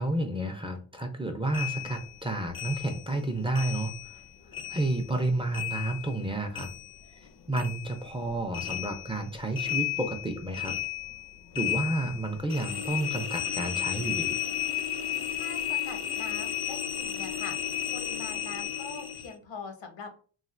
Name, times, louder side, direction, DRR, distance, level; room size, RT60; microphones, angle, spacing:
voice 1, 0.0-4.2 4.7-6.7 7.5-10.8 11.5-14.4, right 2 dB, 10° right, 5 dB, 0.4 m, -31 dB
sound 1, 1.5-4.3 4.5-7.3 7.5-19.3, left 11 dB, 50° left, 0.6 m, -34 dB
voice 2, 15.3-17.5 17.9-20.1, left 4 dB, 70° left, 5 dB, 0.9 m, -43 dB
3.2 x 2.4 x 2.5 m, 0.41 s
cardioid pair, 65°, 46 cm